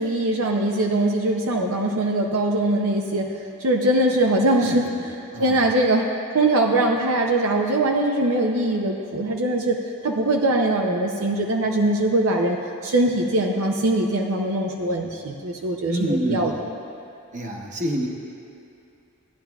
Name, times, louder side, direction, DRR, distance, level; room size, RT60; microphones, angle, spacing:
voice 1, 0.0-3.3 3.6-6.1 6.3-9.8 10.0-12.6 12.8-16.5, right 1 dB, 70° right, 1 dB, 0.6 m, -22 dB
voice 2, 4.6-5.0 5.3-5.6 15.9-16.5 17.3-18.1, right 1 dB, 35° right, 0 dB, 1.0 m, -27 dB
15.5 x 10.0 x 2.3 m, 2.6 s
head